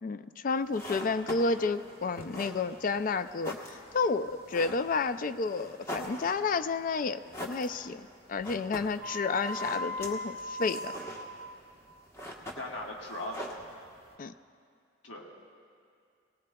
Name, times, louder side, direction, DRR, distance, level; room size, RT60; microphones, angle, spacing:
voice 1, 0.0-10.9 14.2-14.3, left 4 dB, 45° left, 12 dB, 0.3 m, -31 dB
sound 1, 0.6-14.2, equal, 15° left, 1.1 m, -44 dB
sound 2, 9.0-11.6, left 1 dB, 45° right, 0.7 m, -38 dB
voice 2, 12.6-13.6 15.0-15.3, left 1 dB, 70° left, -2 dB, 1.5 m, -39 dB
19.0 x 19.0 x 2.3 m, 2.4 s
head